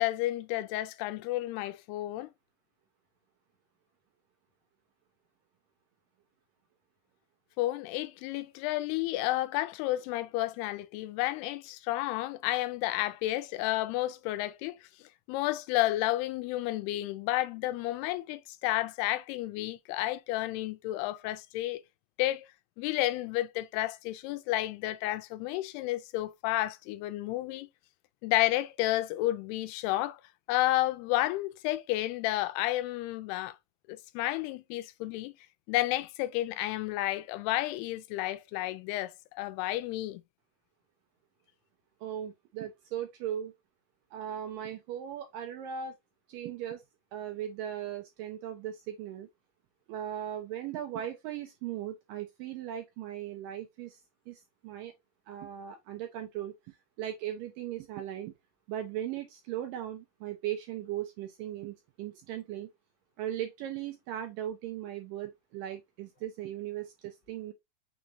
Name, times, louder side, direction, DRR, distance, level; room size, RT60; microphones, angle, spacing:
voice 1, 0.0-2.3 7.6-21.8 22.2-22.5 22.8-27.7 28.2-30.2 30.5-33.6 33.9-35.3 35.7-40.2, left 16 dB, 90° left, 2.6 m, -31 dB
voice 2, 42.0-43.5 44.1-45.9 46.3-46.8 47.1-49.3 49.9-54.0 54.3-54.9 55.3-58.3 58.7-62.7 63.2-67.5, right 11 dB, 80° right, 2.0 m, -38 dB
6.1 x 3.0 x 2.7 m
omnidirectional pair, 4.5 m